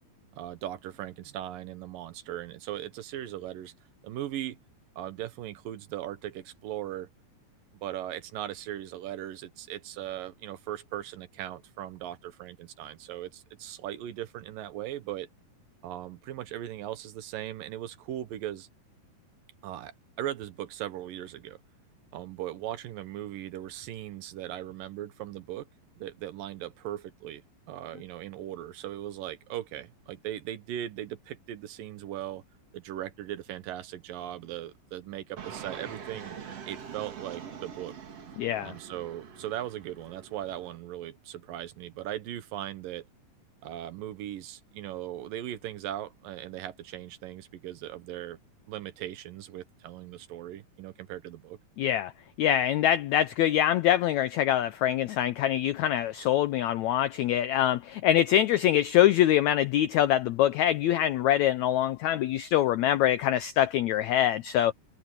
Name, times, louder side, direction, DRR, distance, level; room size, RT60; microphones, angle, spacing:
voice 1, 0.3-3.7 4.0-4.6 5.0-7.1 7.8-15.3 15.8-18.7 19.6-21.6 22.1-25.7 26.0-27.4 27.7-32.4 32.7-36.4 36.7-37.9 38.6-43.1 43.6-48.4 48.7-51.6, right 12 dB, 75° right, 2.8 m, -38 dB
Fixed-wing aircraft airplane, 35.4-40.8, right 7 dB, 45° right, 3.0 m, -44 dB
voice 2, 38.4-38.7 51.8-52.1 52.4-64.7, left 12 dB, 85° left, 1.6 m, -24 dB
omnidirectional pair, 4.1 m